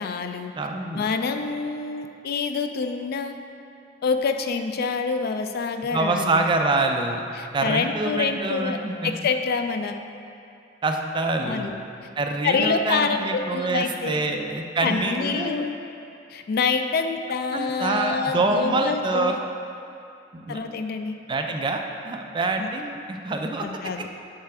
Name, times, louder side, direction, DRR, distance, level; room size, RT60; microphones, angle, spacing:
voice 1, 0.0-0.5 0.9-3.4 4.0-6.4 7.4-8.8 9.0-10.0 11.4-11.8 12.4-14.2 14.8-15.8 16.3-19.4 20.5-21.2 22.6-22.7 23.6-24.1, left 5 dB, 55° left, 7 dB, 0.3 m, -26 dB
voice 2, 0.6-1.0 5.9-7.2 7.5-9.1 10.8-11.7 12.2-15.7 17.5-19.4 20.3-20.6 21.3-23.7, right 2 dB, 25° right, 4 dB, 0.4 m, -25 dB
6.8 x 3.3 x 5.8 m, 2.6 s
head